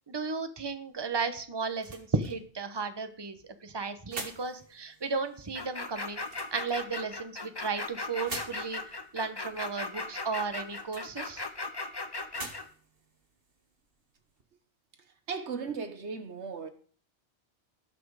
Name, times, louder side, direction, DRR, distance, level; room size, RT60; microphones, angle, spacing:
voice 1, 0.1-6.2 6.5-11.4, right 4 dB, 25° right, 1.1 m, -34 dB
sound 1, 0.9-14.4, right 3 dB, 55° right, 1.9 m, -48 dB
sound 2, 5.5-12.6, left 3 dB, 25° left, 1.0 m, -37 dB
voice 2, 15.3-16.7, right 5 dB, 80° right, 1.6 m, -36 dB
18.0 x 6.1 x 4.9 m
omnidirectional pair, 1.1 m